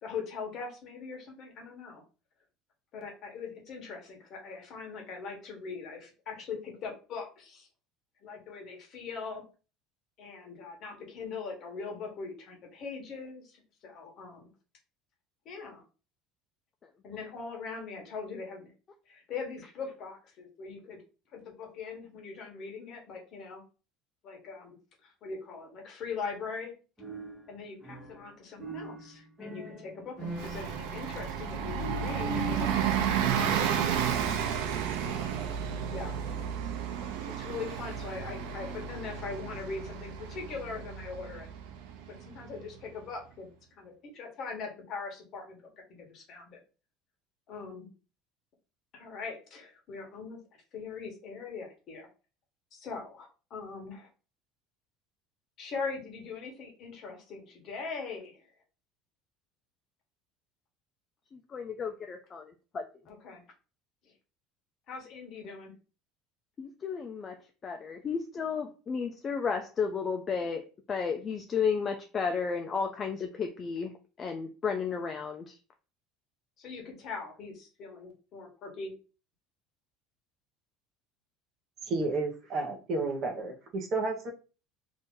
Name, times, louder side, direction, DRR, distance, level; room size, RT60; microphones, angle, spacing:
voice 1, 0.0-2.0 2.9-7.7 8.2-9.4 10.2-14.5 15.4-15.8 17.0-18.7 19.1-21.0 21.3-23.6 24.2-24.8 25.0-26.7 27.5-32.7 33.3-33.5 33.8-34.1 35.0-35.4 35.9-36.2 37.4-41.5 42.2-46.6 47.5-47.9 48.9-50.4 50.7-52.1 52.7-54.1 55.6-58.5 63.0-63.4 64.9-65.7 76.6-78.9, left 4 dB, 40° left, 1 dB, 1.1 m, -41 dB
sound 1, 27.0-28.3 28.6-33.9, right 1 dB, 10° right, 1.2 m, -42 dB
Bus, 30.3-42.6, right 8 dB, 85° right, 0.6 m, -32 dB
voice 2, 61.3-62.8 66.6-67.4 67.6-75.6, left 5 dB, 25° left, 4 dB, 0.3 m, -33 dB
voice 3, 81.9-84.3, right 3 dB, 40° right, 2 dB, 0.8 m, -31 dB
2.8 x 2.6 x 3.6 m, 0.34 s
cardioid pair, 160°, 0 cm